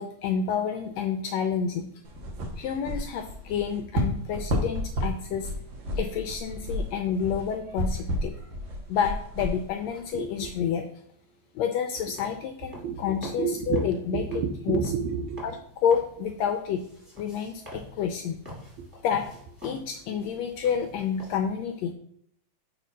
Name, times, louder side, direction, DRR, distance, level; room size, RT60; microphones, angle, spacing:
voice 1, 0.0-1.9 2.6-5.5 6.0-8.4 8.9-10.8 11.5-14.2 14.7-14.8 15.4-15.6 15.8-16.8 17.2-18.4 19.0-19.3 19.6-21.9, left 7 dB, 80° left, 6 dB, 1.5 m, -29 dB
sound 1, 2.0-10.5, equal, 60° right, 1.3 m, -32 dB
voice 2, 10.1-10.5 12.7-15.4 18.8-18.9, right 6 dB, 80° right, 7 dB, 1.8 m, -30 dB
sound 2, 12.1-21.4, left 1 dB, 5° right, 2.2 m, -47 dB
5.0 x 4.2 x 5.5 m, 0.70 s
omnidirectional pair, 3.4 m